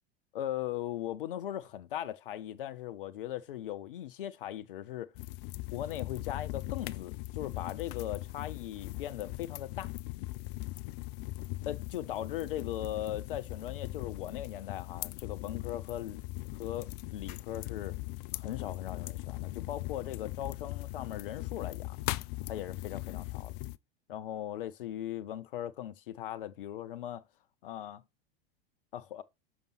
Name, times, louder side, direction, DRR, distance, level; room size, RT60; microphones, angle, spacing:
voice 1, 0.3-5.1 5.7-9.9 11.7-16.2 16.6-18.0 18.3-22.0 22.5-23.6 24.1-27.2 27.6-28.0 28.9-29.2, left 12 dB, 65° left, 0.8 m, -39 dB
sound 1, 5.2-23.8, left 19 dB, 45° left, 0.4 m, -40 dB
6.8 x 5.3 x 4.3 m
figure-of-eight pair, 85°, 29 cm